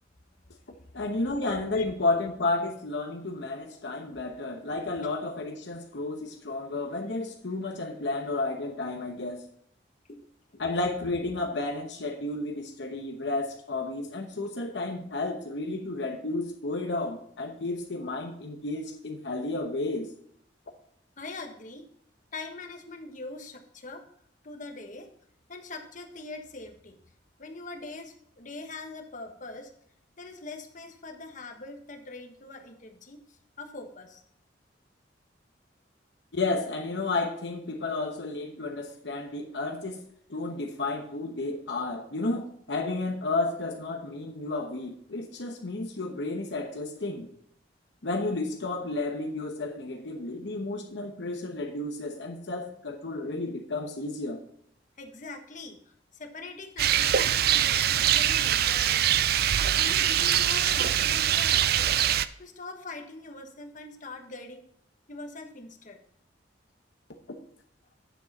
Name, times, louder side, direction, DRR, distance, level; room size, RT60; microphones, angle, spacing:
voice 1, 0.9-9.4 10.6-20.1 36.3-40.0 40.3-47.3 48.0-54.4 67.3-67.4, left 2 dB, 65° left, 3 dB, 1.0 m, -32 dB
voice 2, 21.2-21.8 22.3-24.0 24.4-25.1 25.5-27.0 27.4-29.7 30.2-34.2 55.0-59.1 59.7-62.0 62.4-64.6 65.1-66.0, left 3 dB, 45° left, 4 dB, 1.3 m, -42 dB
Rain, 56.8-62.3, right 10 dB, 55° right, 0.4 m, -23 dB
9.1 x 7.6 x 4.2 m, 0.67 s
head